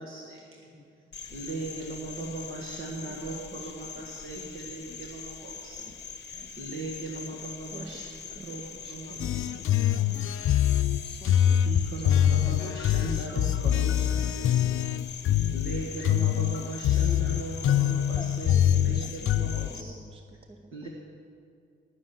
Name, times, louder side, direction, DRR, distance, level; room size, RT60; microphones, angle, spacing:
voice 1, 0.0-0.7 1.3-5.9 6.3-8.1 8.4-9.5 11.3-14.4 15.5-19.9 20.7-20.9, right 3 dB, 85° right, -1 dB, 1.6 m, -38 dB
voice 2, 0.7-1.6 3.5-3.9 4.4-5.0 6.3-6.8 9.5-10.6 11.0-11.7 18.1-18.6 18.9-19.1 20.7-20.9, left 2 dB, 25° left, 7 dB, 0.7 m, -50 dB
Cricket, 1.1-19.8, left 6 dB, 55° left, 0.8 m, -43 dB
voice 3, 2.2-2.7 3.0-4.0 5.8-6.0 7.7-8.1 8.3-9.6 12.6-12.8 13.1-13.5 13.8-15.2 18.8-20.9, right 2 dB, 30° right, 5 dB, 0.6 m, -50 dB
sound 1, 9.2-19.7, left 11 dB, 90° left, 0.5 m, -24 dB
19.5 x 6.5 x 9.2 m, 2.4 s
wide cardioid pair, 165°, 21 cm